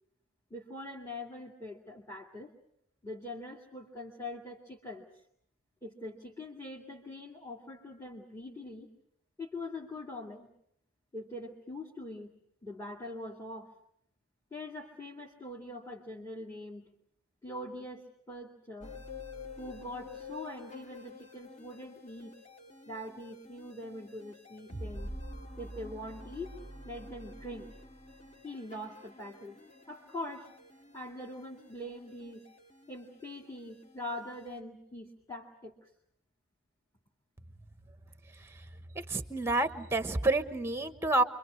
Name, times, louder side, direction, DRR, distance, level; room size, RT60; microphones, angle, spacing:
voice 1, 0.5-2.5 3.0-5.1 5.8-8.9 9.4-10.5 11.1-12.4 12.6-13.7 14.5-16.9 17.4-18.9 19.6-22.3 22.9-25.1 25.6-26.5 26.8-27.7 28.4-29.6 29.9-30.5 30.9-32.5 32.9-35.8, left 1 dB, 15° left, -2 dB, 2.4 m, -43 dB
sound 1, 18.8-34.6, left 1 dB, 35° left, 2.3 m, -48 dB
voice 2, 38.9-41.2, right 2 dB, 10° right, 10 dB, 1.1 m, -29 dB
28.5 x 24.5 x 6.5 m, 0.72 s
head